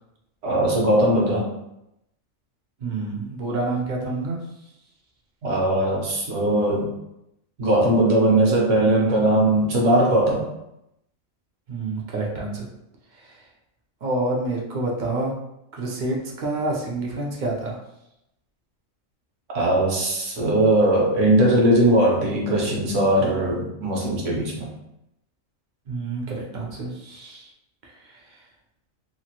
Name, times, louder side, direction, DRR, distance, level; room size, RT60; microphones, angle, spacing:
voice 1, 0.4-1.5 5.4-6.9 7.6-10.5 19.5-24.7, right 1 dB, 70° right, -2 dB, 1.2 m, -20 dB
voice 2, 2.8-4.4 11.7-12.7 13.1-13.4 14.0-15.3 15.7-17.8 25.9-27.5 27.8-28.2, right 2 dB, 50° right, -2 dB, 0.6 m, -28 dB
2.9 x 2.5 x 2.8 m, 0.84 s
omnidirectional pair, 1.4 m